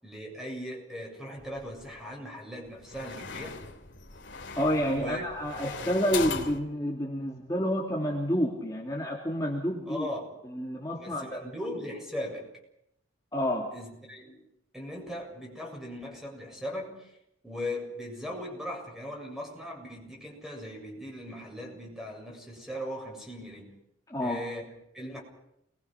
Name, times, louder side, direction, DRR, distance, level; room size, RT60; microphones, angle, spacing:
voice 1, 0.0-3.7 4.9-5.3 9.9-10.4 11.0-12.5 13.7-14.4 14.7-17.1 17.4-23.7 24.2-25.2, left 1 dB, ahead, 0 dB, 7.5 m, -39 dB
sound 1, 1.4-2.0 2.6-6.6, left 5 dB, 60° left, 3.2 m, -39 dB
voice 2, 4.6-10.1 10.4-11.4 13.3-13.7 24.1-24.4, equal, 15° left, -3 dB, 3.2 m, -29 dB
29.5 x 22.5 x 6.1 m, 0.80 s
head